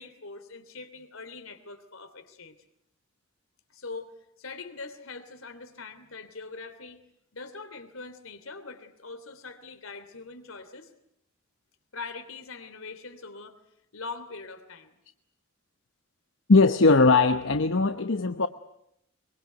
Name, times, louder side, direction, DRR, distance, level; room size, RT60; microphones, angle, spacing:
voice 1, 0.0-2.5 3.7-4.1 4.4-7.0 7.3-10.9 11.9-13.6 13.9-15.0, left 4 dB, 85° left, 10 dB, 2.9 m, -42 dB
voice 2, 16.5-18.5, left 3 dB, 70° left, 9 dB, 0.9 m, -20 dB
23.0 x 23.0 x 9.2 m, 0.77 s
head